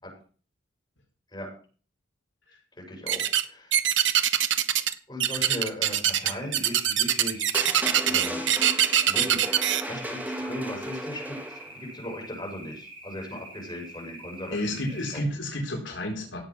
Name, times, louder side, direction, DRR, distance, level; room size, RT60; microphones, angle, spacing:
voice 1, 2.8-3.8 5.1-7.7 8.0-8.4 9.0-9.5 9.9-11.6 11.9-15.2, left 1 dB, 20° left, -1 dB, 6.7 m, -38 dB
sound 1, 3.1-3.4 3.7-4.9 5.2-9.8, right 10 dB, 75° right, 1.3 m, -23 dB
sound 2, 6.0-15.2, right 1 dB, 25° right, 4.7 m, -45 dB
sound 3, 7.5-11.8, right 1 dB, 10° right, 2.2 m, -34 dB
voice 2, 14.5-16.5, left 1 dB, 70° left, 0 dB, 4.3 m, -31 dB
17.5 x 7.9 x 6.4 m, 0.40 s
head